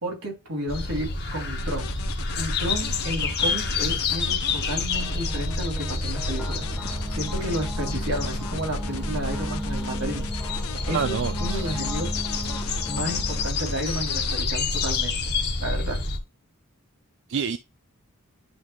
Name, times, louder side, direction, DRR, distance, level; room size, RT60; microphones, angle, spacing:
voice 1, 0.0-1.9 2.4-10.5 10.9-12.2 12.9-15.3 15.6-16.0, equal, 80° right, 3.3 m, -32 dB
sound 1, 0.7-16.2, left 3 dB, 50° left, 1.5 m, -28 dB
sound 2, 1.6-14.4, left 7 dB, 85° left, 1.0 m, -40 dB
sound 3, 4.9-13.5, equal, 5° left, 1.0 m, -38 dB
voice 2, 10.9-11.8 17.3-17.6, right 6 dB, 55° right, 0.4 m, -28 dB
10.5 x 3.6 x 3.1 m
head